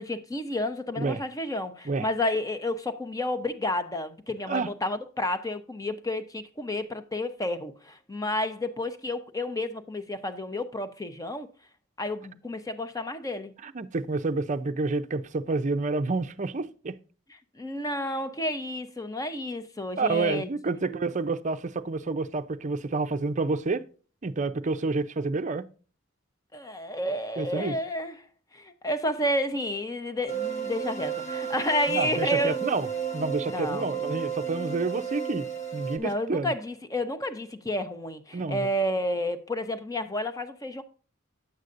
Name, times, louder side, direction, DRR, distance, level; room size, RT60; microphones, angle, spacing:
voice 1, 0.0-11.5 12.0-13.5 17.6-21.0 26.5-28.2 28.5-32.8 33.5-33.8 36.0-40.8, left 1 dB, 15° left, 0.8 m, -31 dB
voice 2, 13.6-17.0 20.0-23.9 24.2-25.7 27.4-27.8 31.9-32.9 33.1-35.5 35.7-36.5 38.3-38.7, right 3 dB, 40° right, 0.6 m, -29 dB
sound 1, 30.3-36.0, right 7 dB, 35° left, 1.4 m, -33 dB
9.7 x 8.0 x 2.5 m
head